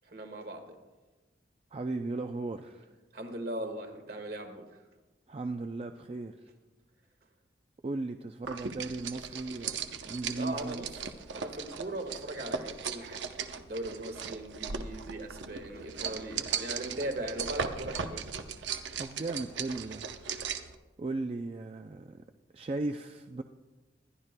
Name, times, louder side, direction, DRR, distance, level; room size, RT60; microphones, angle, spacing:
voice 1, 0.0-0.8 3.1-4.6 10.3-10.9 11.3-18.2, right 1 dB, 55° right, 4 dB, 1.6 m, -39 dB
voice 2, 1.7-2.9 5.3-6.4 7.8-10.9 19.0-20.1 21.0-22.2 22.5-23.4, right 2 dB, 35° right, 6 dB, 0.4 m, -36 dB
sound 1, 8.4-20.7, right 6 dB, 90° right, 0.7 m, -38 dB
21.0 x 12.0 x 2.2 m, 1.2 s
head